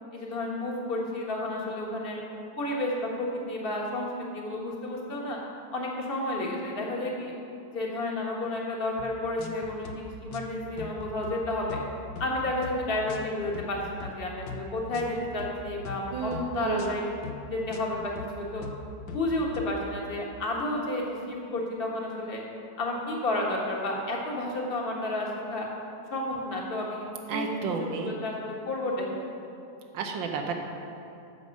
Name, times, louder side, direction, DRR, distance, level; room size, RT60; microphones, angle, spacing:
voice 1, 0.1-2.2 2.6-5.4 5.7-7.3 7.7-11.8 12.2-17.1 17.5-18.6 19.1-22.4 22.8-25.7 26.1-29.0, left 1 dB, 30° left, -2 dB, 1.6 m, -31 dB
sound 1, 9.0-9.1 9.4-10.0 10.3-10.5 10.8-11.3 11.7-11.9 12.2-12.7 13.1-13.3 13.5-14.1 14.5-14.7 14.9-15.5 15.8-16.0 16.3-16.9 17.2-17.4 17.7-18.3 18.6-18.8 19.1-19.7, left 5 dB, 85° left, 1.5 m, -40 dB
voice 2, 16.1-16.9 27.3-28.1 29.9-30.6, right 4 dB, 85° right, 3 dB, 1.7 m, -31 dB
13.0 x 5.3 x 6.5 m, 2.7 s
omnidirectional pair, 2.0 m